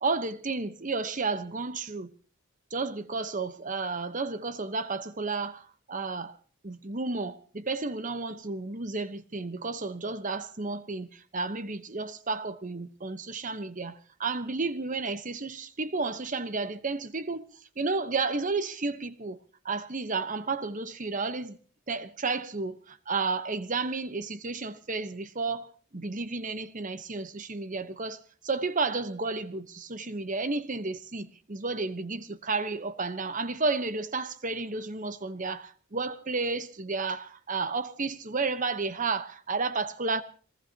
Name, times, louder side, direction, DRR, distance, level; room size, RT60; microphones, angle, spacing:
voice 1, 0.0-2.1 2.7-6.4 6.6-17.5 17.8-19.4 19.6-21.6 21.9-40.2, right 3 dB, 35° right, 1.0 m, -32 dB
25.5 x 19.5 x 2.9 m
head